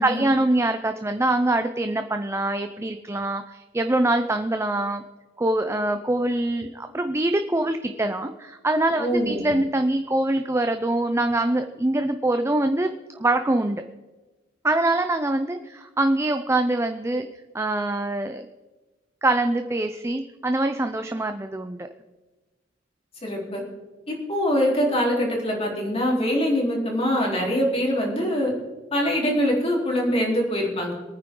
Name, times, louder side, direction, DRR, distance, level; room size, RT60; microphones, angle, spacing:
voice 1, 0.0-5.0 5.4-13.8 14.6-17.3 17.5-18.5 19.2-21.9, right 2 dB, 15° right, 7 dB, 0.5 m, -24 dB
voice 2, 9.0-9.5 23.2-23.6 24.1-28.5 28.9-30.9, equal, 35° left, -2 dB, 3.9 m, -23 dB
22.5 x 9.4 x 3.8 m, 1.2 s
head